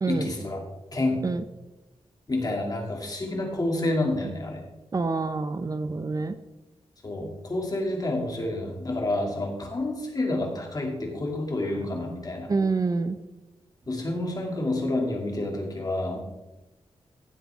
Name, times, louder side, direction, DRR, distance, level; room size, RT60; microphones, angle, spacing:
voice 1, 0.1-1.3 2.3-4.6 7.0-12.5 13.9-16.2, left 2 dB, 35° left, 1 dB, 2.6 m, -29 dB
voice 2, 4.9-6.4 12.5-13.2, right 3 dB, 35° right, 11 dB, 0.6 m, -27 dB
15.5 x 7.9 x 3.6 m, 1.0 s
wide cardioid pair, 125°, 11 cm